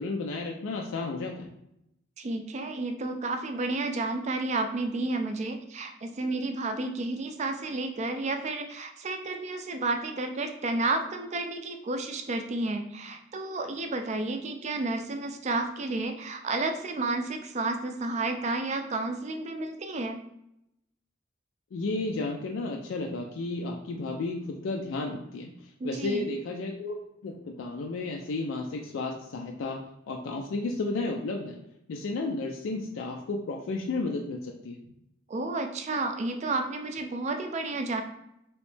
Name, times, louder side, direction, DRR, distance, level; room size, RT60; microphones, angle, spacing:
voice 1, 0.0-1.5 21.7-31.6 31.9-34.8, left 3 dB, 80° left, 2 dB, 0.4 m, -33 dB
voice 2, 2.2-20.2 25.8-26.2 35.3-38.0, right 2 dB, 35° right, 6 dB, 0.4 m, -31 dB
3.1 x 3.0 x 3.2 m, 0.81 s
head